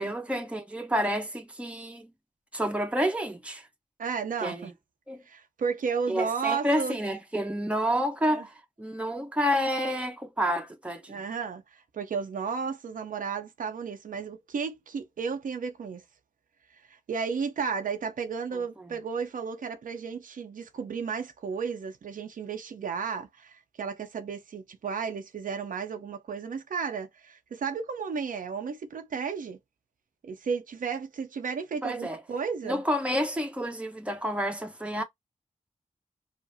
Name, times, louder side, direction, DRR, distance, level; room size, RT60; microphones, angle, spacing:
voice 1, 0.0-2.1 2.5-3.7 4.4-4.7 5.1-5.2 6.1-11.2 31.8-32.2 32.6-35.0, equal, 10° right, 0.9 m, -29 dB
voice 2, 4.0-4.7 5.3-7.0 8.3-8.5 11.1-16.0 17.1-29.6 30.2-32.8, right 6 dB, 90° right, 0.7 m, -33 dB
5.0 x 2.0 x 2.7 m
wide cardioid pair, 85°, 14 cm